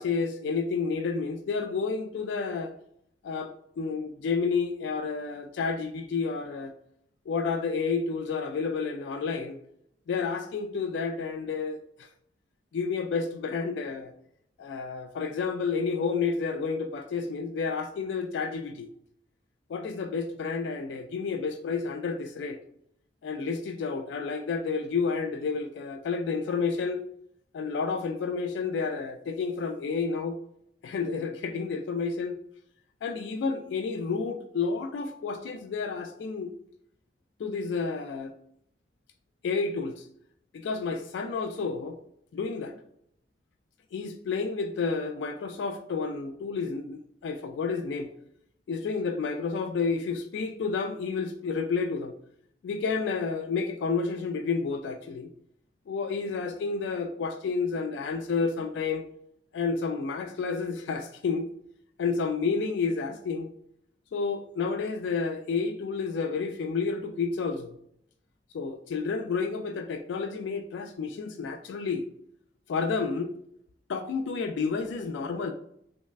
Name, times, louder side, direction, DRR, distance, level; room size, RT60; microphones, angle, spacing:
voice 1, 0.0-2.7 3.2-6.7 7.3-9.6 10.1-12.1 12.7-14.1 14.6-18.9 19.7-22.6 23.2-27.0 27.5-30.4 30.8-32.4 33.0-36.5 37.4-38.3 39.4-40.1 40.5-42.0 42.3-42.7 43.9-48.1 48.7-52.1 52.6-55.3 55.9-59.1 59.5-61.5 62.0-63.5 64.1-67.8 68.5-72.0 72.7-73.3 73.9-75.5, left 5 dB, 90° left, 7 dB, 0.3 m, -30 dB
3.4 x 3.1 x 2.3 m, 0.71 s
head